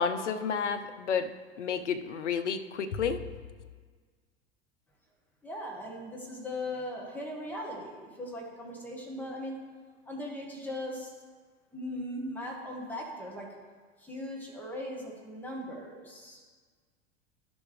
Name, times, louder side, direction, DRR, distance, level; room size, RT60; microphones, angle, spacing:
voice 1, 0.0-3.2, left 6 dB, 75° left, 10 dB, 0.6 m, -31 dB
voice 2, 5.4-9.6 10.1-11.1 11.7-13.5 14.0-16.4, left 1 dB, 5° left, -3 dB, 2.1 m, -39 dB
12.0 x 7.0 x 3.4 m, 1.5 s
figure-of-eight pair, 80°, 36 cm